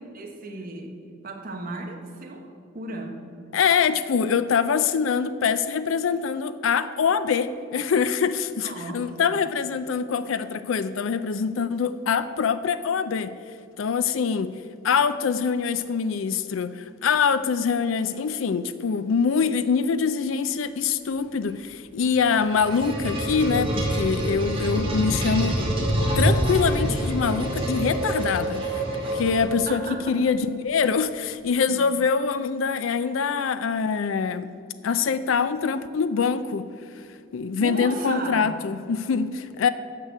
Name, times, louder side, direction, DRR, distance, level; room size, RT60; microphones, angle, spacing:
voice 1, 0.1-1.0 1.2-3.2 8.6-9.0 9.3-9.4 29.6-30.3 31.7-31.8 37.6-38.6, right 2 dB, 50° right, 2 dB, 1.3 m, -35 dB
voice 2, 3.5-13.3 13.8-14.6 14.8-25.7 26.2-28.8 29.1-34.5 34.8-36.6 37.3-39.7, left 6 dB, 90° left, 12 dB, 0.4 m, -24 dB
sound 1, 22.1-29.9, right 1 dB, 30° right, 2.4 m, -26 dB
9.9 x 6.4 x 6.6 m, 2.5 s
head